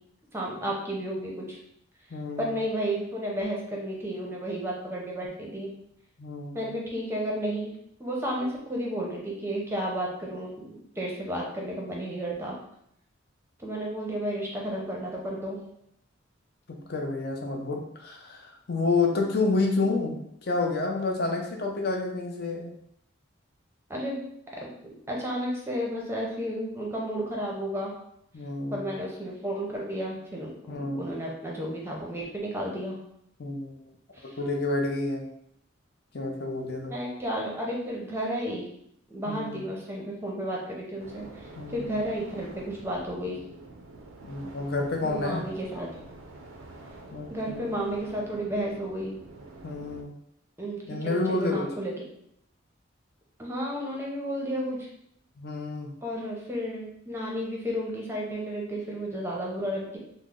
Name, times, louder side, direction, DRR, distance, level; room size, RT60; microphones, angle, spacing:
voice 1, 0.3-1.6 2.4-5.7 6.5-7.7 8.0-12.6 13.6-15.6 23.9-24.2 24.5-24.7 25.1-27.9 28.7-33.0 34.1-34.4 36.9-38.7 39.1-43.4 45.0-45.9 47.3-49.2 50.6-51.9 53.4-54.9 56.0-60.0, equal, 10° right, -2 dB, 0.6 m, -32 dB
voice 2, 2.1-2.5 6.2-6.7 16.7-22.8 28.3-28.9 30.7-31.3 33.4-33.7 34.2-35.3 36.1-37.0 39.3-39.7 41.5-41.9 44.2-45.5 47.1-47.7 49.6-50.1 50.9-51.7 55.4-55.9, left 3 dB, 50° left, 1 dB, 0.5 m, -29 dB
sound 1, 41.0-50.0, right 2 dB, 90° right, 0.4 m, -47 dB
3.1 x 2.0 x 3.6 m, 0.72 s
head